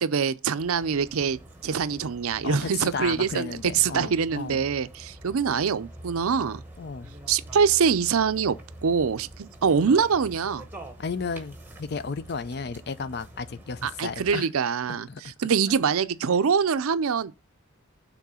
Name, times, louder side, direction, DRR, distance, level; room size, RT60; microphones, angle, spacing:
voice 1, 0.0-6.6 7.3-8.6 8.8-10.7 13.8-17.3, right 6 dB, 75° right, 0.5 m, -24 dB
sound 1, 0.6-14.4, right 1 dB, 10° right, 0.9 m, -46 dB
voice 2, 2.4-4.6 6.8-7.1 11.0-14.5 14.9-15.3, left 5 dB, 45° left, 0.4 m, -34 dB
6.0 x 3.7 x 5.5 m
head